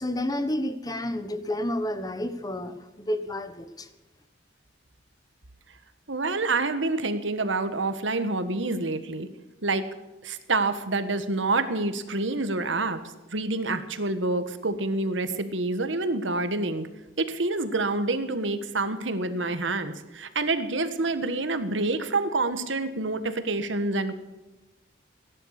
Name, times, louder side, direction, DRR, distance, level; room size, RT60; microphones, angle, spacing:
voice 1, 0.0-3.9, left 1 dB, 20° left, 10 dB, 1.2 m, -30 dB
voice 2, 6.1-9.3 9.6-9.8 10.2-13.0 13.3-16.9 17.2-24.1, right 2 dB, 75° right, 10 dB, 1.5 m, -27 dB
17.0 x 11.0 x 6.6 m, 1.1 s
head